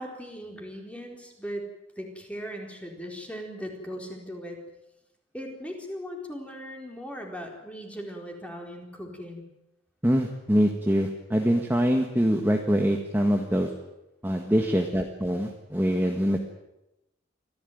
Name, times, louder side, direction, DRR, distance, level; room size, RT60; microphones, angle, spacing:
voice 1, 0.0-1.7 2.0-4.6 5.3-9.4, equal, 5° left, 1 dB, 4.3 m, -38 dB
voice 2, 10.0-13.7 14.2-16.4, equal, 10° right, 3 dB, 1.5 m, -24 dB
24.5 x 15.5 x 9.4 m, 0.94 s
head